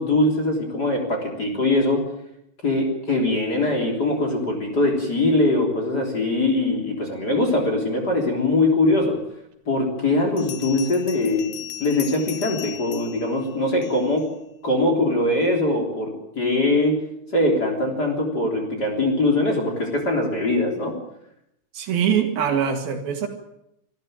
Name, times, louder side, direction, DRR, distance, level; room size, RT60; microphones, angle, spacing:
voice 1, 0.0-2.1 2.6-9.2 9.7-14.3 14.6-17.0 17.3-21.0, left 2 dB, 25° left, 3 dB, 3.6 m, -22 dB
Bell, 9.2-9.3 10.4-14.3, left 12 dB, 65° left, 2.5 m, -38 dB
voice 2, 21.7-23.3, right 8 dB, 70° right, 5 dB, 3.8 m, -23 dB
25.5 x 13.5 x 9.1 m, 0.80 s
omnidirectional pair, 4.6 m